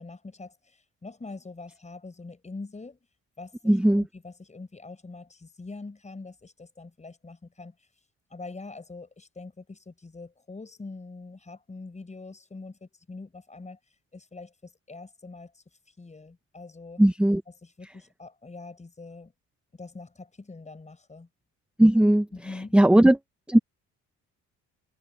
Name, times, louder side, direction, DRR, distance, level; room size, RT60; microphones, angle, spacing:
voice 1, 0.0-3.0 3.4-7.7 8.3-13.8 14.1-15.6 16.0-17.0 17.6-19.3 19.7-21.3 22.3-22.8, left 3 dB, 25° left, 4.9 m, -43 dB
voice 2, 3.6-4.0 17.0-17.4 21.8-22.3 22.7-23.2 23.5-23.6, right 1 dB, 5° right, 0.9 m, -18 dB
cardioid pair, 90°, 30 cm